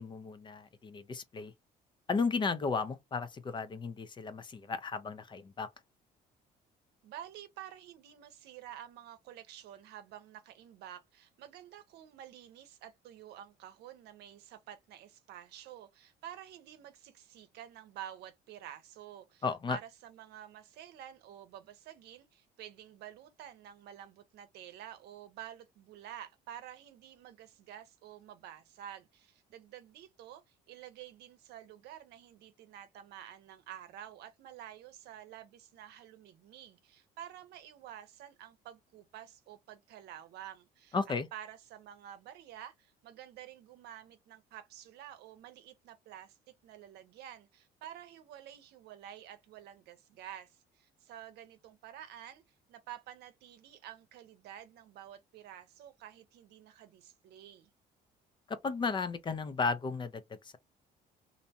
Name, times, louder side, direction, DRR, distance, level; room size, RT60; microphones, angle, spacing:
voice 1, 0.0-1.5 2.1-5.7 19.4-19.8 40.9-41.3 58.5-60.6, left 4 dB, 30° left, 0.5 m, -34 dB
voice 2, 7.0-46.4 46.6-52.4 52.7-57.7, right 11 dB, 80° right, 0.7 m, -50 dB
2.6 x 2.1 x 2.8 m
cardioid pair, 110°, 17 cm